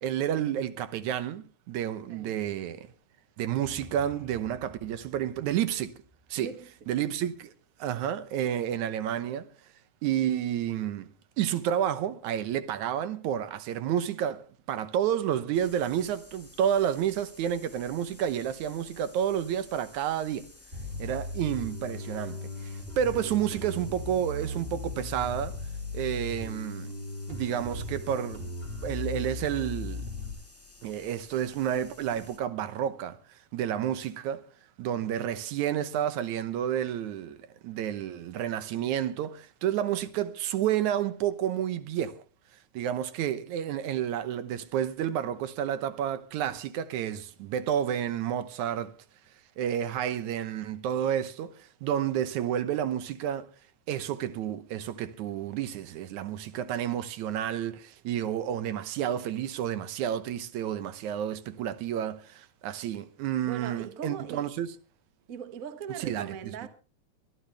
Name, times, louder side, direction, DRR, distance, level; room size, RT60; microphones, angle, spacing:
voice 1, 0.0-2.9 3.4-5.9 6.3-6.5 6.9-7.5 7.8-9.5 10.0-11.1 11.4-14.4 14.7-20.5 21.0-25.6 25.9-26.9 27.3-28.5 28.8-30.1 30.8-33.2 33.5-34.5 34.8-42.2 42.7-48.9 49.6-53.5 53.9-64.7 66.0-66.3, right 10 dB, 85° right, 2.4 m, -30 dB
voice 2, 2.1-2.4 6.3-6.7 63.4-64.5 65.3-66.7, right 7 dB, 45° right, 1.1 m, -40 dB
sound 1, 3.6-7.3, equal, 25° left, 0.3 m, -52 dB
sound 2, 15.5-32.4, left 2 dB, 5° left, 1.2 m, -54 dB
Bass guitar, 20.7-30.3, left 2 dB, 20° right, 3.6 m, -37 dB
23.5 x 12.0 x 3.4 m
omnidirectional pair, 3.3 m